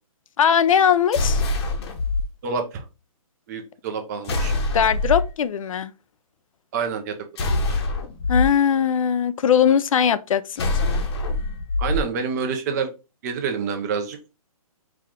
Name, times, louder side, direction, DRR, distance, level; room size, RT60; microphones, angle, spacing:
voice 1, 0.4-1.4 4.7-5.9 8.3-11.1, left 8 dB, 65° left, 0.4 m, -20 dB
sound 1, 1.1-2.2 4.3-5.3 7.4-8.5 10.6-12.0, left 2 dB, 45° left, 0.9 m, -24 dB
voice 2, 2.4-2.8 3.5-4.5 6.7-7.1 11.8-12.9 13.2-14.2, right 5 dB, 30° right, 0.6 m, -27 dB
4.6 x 2.4 x 3.5 m
hypercardioid pair, 150°, 19 cm